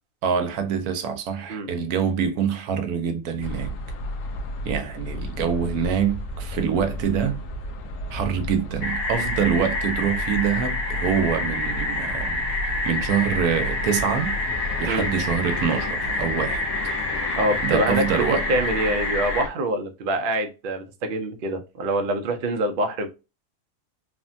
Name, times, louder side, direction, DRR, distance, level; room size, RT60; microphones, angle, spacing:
voice 1, 0.2-3.7 4.6-7.4 8.1-12.4 12.8-14.4 14.8-16.6 17.6-18.4, right 7 dB, 85° right, 1.1 m, -25 dB
sound 1, 3.4-19.5, left 2 dB, 70° left, 0.9 m, -33 dB
sound 2, 8.8-19.4, left 2 dB, 35° left, 0.6 m, -28 dB
voice 2, 17.4-23.1, right 1 dB, 65° right, 0.5 m, -25 dB
3.2 x 2.1 x 2.6 m
omnidirectional pair, 1.5 m